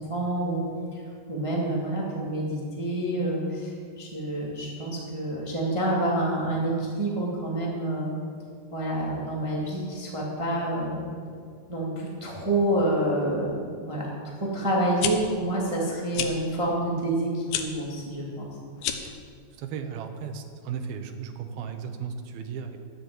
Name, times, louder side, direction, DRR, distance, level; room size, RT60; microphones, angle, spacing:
voice 1, 0.1-0.6 0.9-1.0 1.3-8.1 8.7-11.1 11.7-13.5 13.8-14.1 14.5-18.5, right 1 dB, 30° right, -3 dB, 0.5 m, -28 dB
sound 1, 14.8-15.1 16.1-16.3 17.5-17.7 18.8-19.2, left 10 dB, 80° left, 2.6 m, -29 dB
voice 2, 19.6-22.8, right 7 dB, 80° right, 7 dB, 2.7 m, -35 dB
11.5 x 8.5 x 7.8 m, 2.2 s
omnidirectional pair, 4.4 m